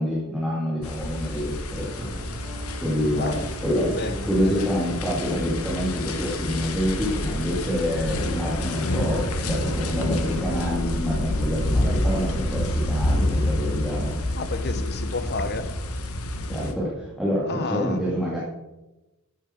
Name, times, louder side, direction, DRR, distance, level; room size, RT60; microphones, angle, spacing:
voice 1, 0.0-2.1 2.8-3.4 3.6-3.9 4.3-14.2 16.5-18.4, equal, ahead, 2.3 m, -27 dB
sound 1, 0.8-16.7, left 1 dB, 70° left, 1.2 m, -28 dB
sound 2, 1.7-10.1, equal, 55° right, 4.4 m, -39 dB
voice 2, 3.1-3.5 3.9-4.7 14.4-15.8 17.4-18.0, left 3 dB, 50° left, 1.0 m, -31 dB
12.5 x 8.9 x 4.5 m
head